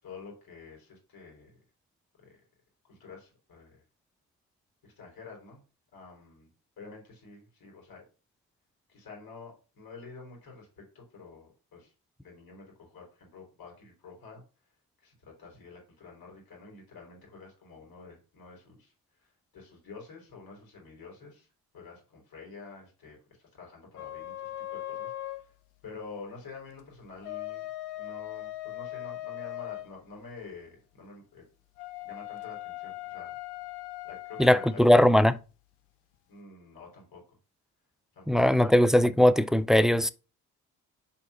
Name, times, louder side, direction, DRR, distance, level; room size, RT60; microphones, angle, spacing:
voice 1, 0.0-1.6 2.2-2.4 2.9-3.8 4.8-5.6 5.9-6.5 6.8-8.0 8.9-11.9 12.2-14.4 15.0-21.5 21.7-25.6 25.8-27.7 28.0-31.4 32.0-33.4 34.0-35.2 36.3-37.4 38.1-38.8, left 4 dB, 55° left, 4.0 m, -48 dB
sound 1, 24.0-25.5 27.0-29.9 31.8-34.8, left 15 dB, 80° left, 0.7 m, -39 dB
voice 2, 34.4-35.3 38.3-40.1, left 1 dB, ahead, 0.3 m, -20 dB
5.1 x 4.6 x 5.6 m
hypercardioid pair, 50°, 42 cm